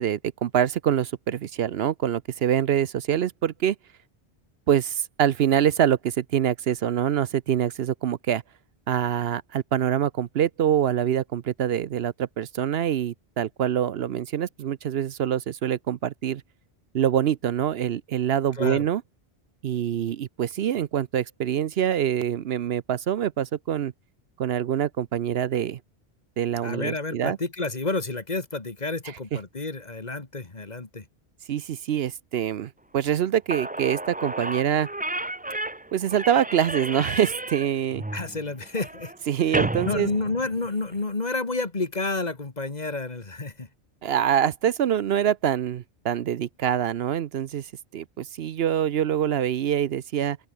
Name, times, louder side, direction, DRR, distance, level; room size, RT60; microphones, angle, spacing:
voice 1, 0.0-3.8 4.7-8.4 8.9-16.4 16.9-19.0 19.6-23.9 24.4-25.8 26.4-27.4 31.5-34.9 35.9-38.0 39.3-40.1 44.0-50.4, right 10 dB, 70° right, 0.9 m, -25 dB
voice 2, 18.5-18.9 26.6-31.1 38.1-39.1 39.8-43.7, left 3 dB, 40° left, 2.0 m, -30 dB
Slam / Squeak, 33.2-33.3 33.5-41.0, right 2 dB, 10° right, 0.5 m, -32 dB
open air
omnidirectional pair, 1.1 m